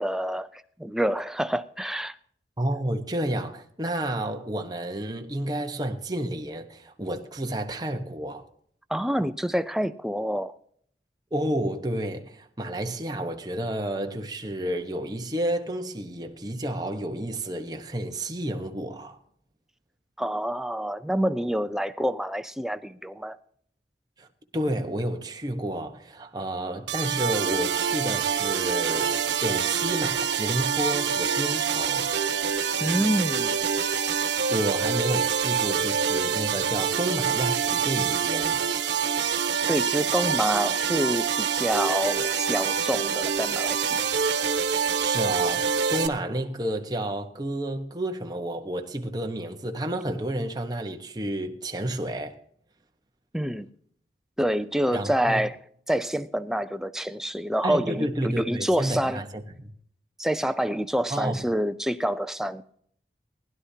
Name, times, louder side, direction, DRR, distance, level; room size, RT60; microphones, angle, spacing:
voice 1, 0.0-2.2 8.9-10.5 20.2-23.4 32.8-33.6 39.7-44.0 53.3-53.7 54.4-55.6 55.9-59.2 60.2-62.6, equal, 5° right, 0.5 m, -27 dB
voice 2, 2.6-8.5 11.3-19.2 24.2-24.3 24.5-32.1 34.5-38.6 45.0-52.4 54.9-55.5 57.6-59.7 61.1-61.4, right 1 dB, 20° right, 1.1 m, -30 dB
sound 1, 26.9-46.1, right 7 dB, 85° right, 1.2 m, -26 dB
20.0 x 11.5 x 2.8 m
head